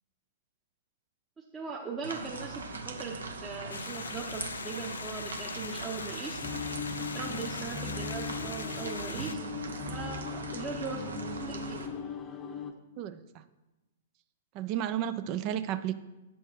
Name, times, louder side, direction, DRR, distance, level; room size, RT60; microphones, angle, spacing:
voice 1, 1.4-3.1 3.4-6.4 7.1-9.4 9.9-11.8, right 4 dB, 20° right, -2 dB, 0.9 m, -39 dB
sound 1, 2.0-11.9, right 3 dB, 70° right, 1.0 m, -41 dB
sound 2, 3.7-9.3, left 6 dB, 70° left, 0.4 m, -41 dB
sound 3, 6.4-12.7, left 4 dB, 20° left, 0.7 m, -39 dB
voice 2, 14.5-15.9, right 10 dB, 35° right, 12 dB, 0.4 m, -32 dB
8.7 x 6.3 x 4.5 m, 1.0 s
figure-of-eight pair, 110°, 0 cm